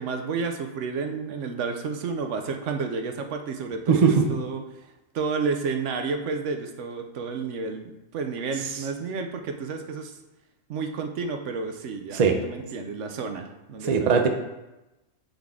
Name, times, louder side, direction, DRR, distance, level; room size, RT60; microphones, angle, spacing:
voice 1, 0.0-4.6 5.1-10.2 10.7-14.1, right 4 dB, 70° right, 5 dB, 0.9 m, -31 dB
voice 2, 3.9-4.2 12.1-12.4 13.8-14.3, right 6 dB, 45° right, 4 dB, 0.5 m, -19 dB
7.9 x 3.9 x 3.5 m, 1.0 s
omnidirectional pair, 1.4 m